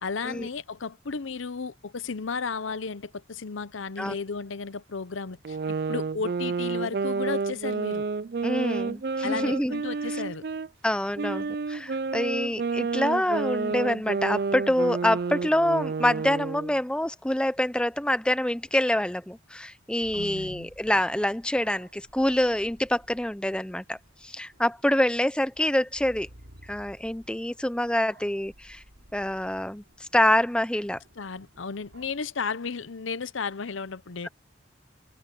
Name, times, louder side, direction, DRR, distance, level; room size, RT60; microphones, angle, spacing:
voice 1, 0.0-8.1 9.2-10.4 20.1-20.7 31.2-34.3, left 5 dB, 85° left, 0.8 m, -34 dB
sound 1, 5.4-10.7 11.2-16.8, right 4 dB, 50° right, 0.4 m, -30 dB
voice 2, 8.4-9.7 10.1-10.2 10.8-26.3 26.7-28.8 29.1-31.0, left 1 dB, 5° left, 0.6 m, -26 dB
sound 2, 20.0-32.3, right 1 dB, 85° right, 6.6 m, -55 dB
head